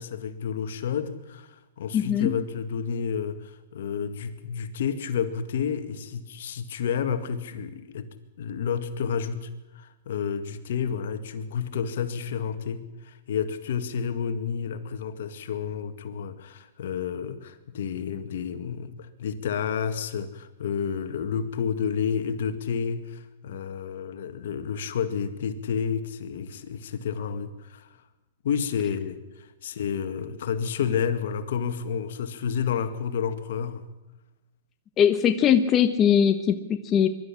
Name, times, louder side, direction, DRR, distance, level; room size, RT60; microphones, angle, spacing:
voice 1, 0.0-27.9 28.4-33.9, left 7 dB, 70° left, 9 dB, 2.0 m, -30 dB
voice 2, 1.9-2.4 35.0-37.1, left 8 dB, 25° left, 8 dB, 1.1 m, -21 dB
23.0 x 12.5 x 10.0 m, 1.0 s
hypercardioid pair, 145°, 0 cm